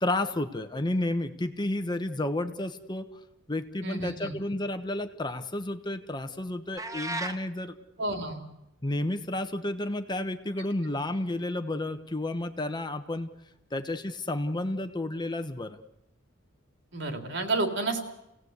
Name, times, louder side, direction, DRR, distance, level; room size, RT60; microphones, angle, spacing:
voice 1, 0.0-3.1 3.5-8.1 8.8-13.3 13.7-15.8, left 1 dB, 20° left, 8 dB, 1.2 m, -31 dB
voice 2, 3.8-4.3 8.0-8.4 16.9-18.0, right 2 dB, 65° right, 5 dB, 3.5 m, -30 dB
sound 1, 6.8-7.4, right 2 dB, 15° right, 1.2 m, -33 dB
29.5 x 17.5 x 8.2 m, 0.88 s
head